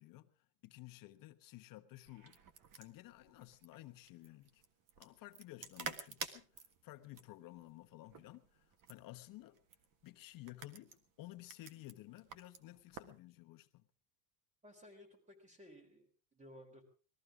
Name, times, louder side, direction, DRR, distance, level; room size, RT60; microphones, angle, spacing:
voice 1, 0.0-2.4 2.8-4.6 5.0-9.6 10.0-13.9, left 17 dB, 45° left, 1.1 m, -54 dB
sound 1, 2.1-13.2, right 6 dB, 45° right, 1.6 m, -51 dB
voice 2, 14.6-16.8, left 1 dB, 15° right, 4.0 m, -58 dB
20.5 x 14.0 x 4.9 m
cardioid pair, 160°, 45 cm